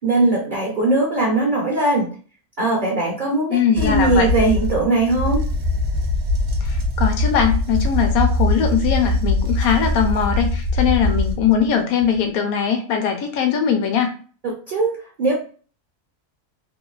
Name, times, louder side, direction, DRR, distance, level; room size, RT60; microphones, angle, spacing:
voice 1, 0.0-2.1 2.6-5.5 14.4-15.3, right 2 dB, 55° right, -3 dB, 0.5 m, -20 dB
voice 2, 3.5-4.3 6.6-14.1, left 7 dB, 75° left, 5 dB, 1.0 m, -20 dB
sound 1, 3.8-11.7 12.0-12.2, left 2 dB, 75° right, 1.0 m, -22 dB
2.8 x 2.2 x 2.3 m, 0.40 s
omnidirectional pair, 1.6 m